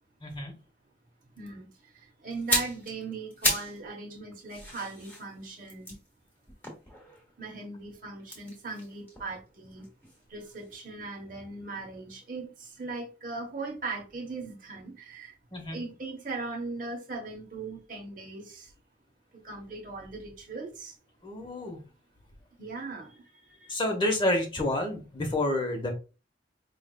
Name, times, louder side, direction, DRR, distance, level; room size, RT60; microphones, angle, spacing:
voice 1, 0.2-0.5 15.5-15.8 21.2-21.8 23.7-25.9, left 1 dB, 25° left, 0.9 m, -29 dB
voice 2, 1.4-1.7 2.2-6.0 7.4-9.8 10.3-12.5 12.8-15.3 15.7-18.7 19.4-20.9 22.6-23.2 23.6-23.7, right 3 dB, 45° right, 1.0 m, -39 dB
sound 1, 2.3-3.8 4.1-7.4 8.2-10.2 10.5-10.7, left 1 dB, 10° left, 1.3 m, -34 dB
4.9 x 3.1 x 2.2 m
head